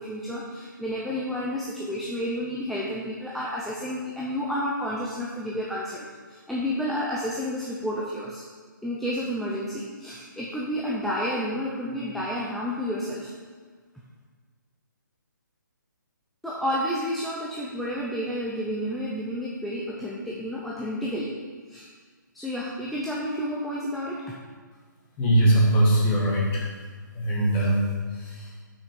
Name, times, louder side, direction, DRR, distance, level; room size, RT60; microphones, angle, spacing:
voice 1, 0.0-8.4 8.8-13.3 16.4-21.3 21.7-21.9 22.3-24.3, equal, ahead, -6 dB, 0.5 m, -30 dB
voice 2, 25.2-26.7 27.1-28.6, right 1 dB, 20° left, -4 dB, 1.8 m, -22 dB
6.9 x 6.1 x 6.5 m, 1.5 s
hypercardioid pair, 155°, 11 cm